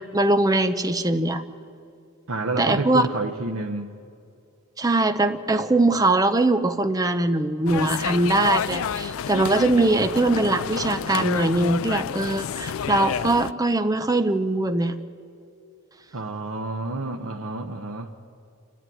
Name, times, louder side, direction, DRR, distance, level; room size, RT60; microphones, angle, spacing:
voice 1, 0.0-1.4 2.6-3.0 4.8-14.9, right 2 dB, 15° right, 8 dB, 0.7 m, -21 dB
voice 2, 2.3-3.9 16.1-18.1, right 2 dB, 75° right, 2 dB, 0.9 m, -29 dB
sound 1, 7.7-13.5, left 7 dB, 80° left, 0.4 m, -29 dB
28.0 x 11.0 x 9.2 m, 2.5 s
head